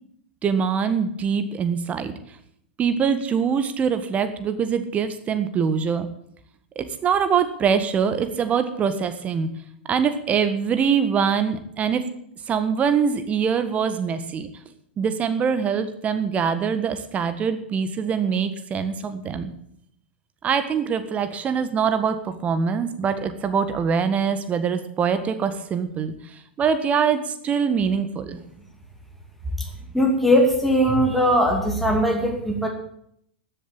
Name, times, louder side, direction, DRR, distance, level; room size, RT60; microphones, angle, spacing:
voice 1, 0.4-2.1 2.8-6.1 6.7-9.5 9.9-12.0 12.5-14.5 15.0-19.5 20.4-26.1 26.6-28.4, right 6 dB, 25° right, 10 dB, 1.6 m, -23 dB
voice 2, 29.9-32.7, equal, ahead, 0 dB, 2.5 m, -20 dB
13.5 x 7.5 x 8.9 m, 0.71 s
figure-of-eight pair, 95°, 5 cm